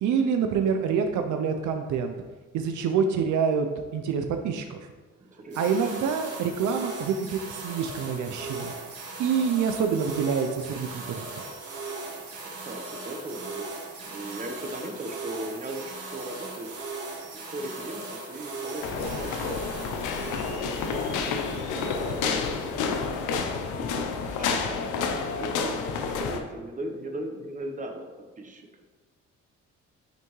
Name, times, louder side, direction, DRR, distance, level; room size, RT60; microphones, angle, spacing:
voice 1, 0.0-2.1 2.5-3.7 3.9-4.8 5.6-8.7 9.2-11.3, right 6 dB, 75° right, 5 dB, 0.6 m, -26 dB
voice 2, 5.2-5.9 12.4-13.7 14.0-16.7 17.3-19.6 20.4-22.5 23.3-28.1 28.4-28.7, right 1 dB, 25° right, 3 dB, 1.0 m, -38 dB
sound 1, 5.5-23.5, right 3 dB, 50° right, 1.6 m, -39 dB
sound 2, 18.8-26.4, left 5 dB, 90° left, 0.6 m, -29 dB
9.3 x 3.4 x 3.1 m, 1.3 s
cardioid pair, 90°, 30 cm